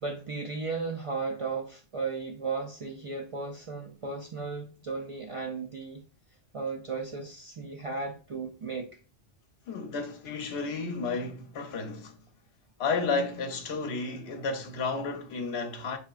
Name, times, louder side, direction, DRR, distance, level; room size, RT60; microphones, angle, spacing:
voice 1, 0.0-6.0 6.5-8.9, right 4 dB, 55° right, 0.3 m, -35 dB
voice 2, 9.7-12.2 12.8-16.0, left 4 dB, 70° left, 0.9 m, -32 dB
4.6 x 2.9 x 2.3 m
omnidirectional pair, 1.1 m